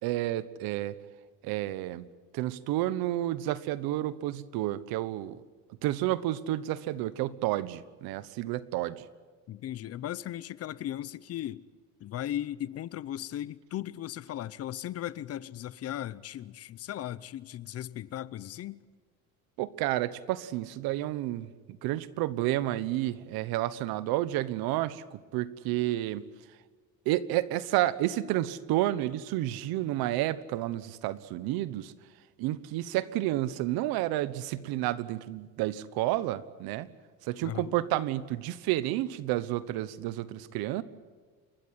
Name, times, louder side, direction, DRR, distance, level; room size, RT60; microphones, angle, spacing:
voice 1, 0.0-1.0 1.4-2.1 2.3-5.4 5.8-9.1 19.6-26.3 27.0-31.9 32.4-36.9 37.2-40.8, right 15 dB, 85° right, 1.2 m, -30 dB
voice 2, 9.5-11.6 12.0-18.8 37.4-37.8, left 12 dB, 45° left, 0.7 m, -37 dB
29.0 x 14.0 x 9.6 m
cardioid pair, 145°, 36 cm